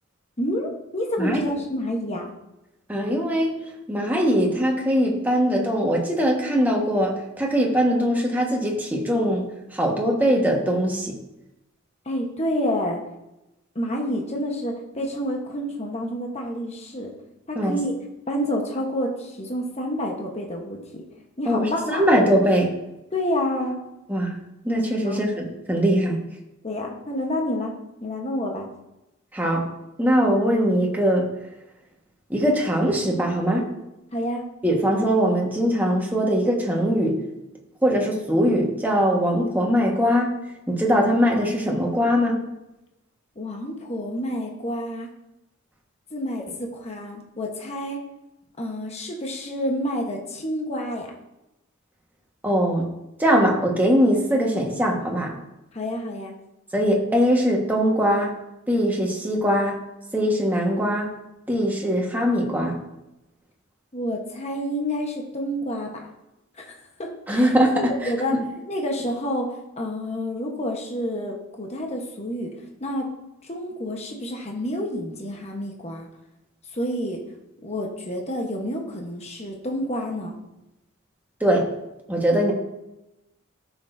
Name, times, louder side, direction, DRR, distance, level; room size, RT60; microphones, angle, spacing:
voice 1, 0.4-2.3 12.0-13.0 13.7-17.1 17.5-17.9 18.3-21.0 21.4-22.1 23.1-23.8 25.1-25.2 26.6-27.7 28.0-28.7 34.1-34.4 43.4-45.1 46.1-48.0 48.6-51.1 55.7-56.3 63.9-66.0 66.6-66.7 67.0-68.4 68.7-72.5 72.8-73.1 73.4-76.1 76.7-77.2 77.6-80.4, equal, 30° left, 1 dB, 1.1 m, -29 dB
voice 2, 2.9-3.5 3.9-9.5 9.7-11.1 17.5-17.8 21.4-22.7 24.1-24.4 24.6-26.2 29.3-29.7 30.0-31.3 32.3-33.7 34.6-37.2 37.8-40.3 40.7-42.4 52.4-52.9 53.2-55.3 56.7-58.3 58.7-59.8 60.1-61.1 61.5-62.8 67.3-68.4 81.4-81.7 82.1-82.5, equal, 10° right, -1 dB, 1.4 m, -21 dB
13.5 x 6.1 x 2.7 m, 0.94 s
head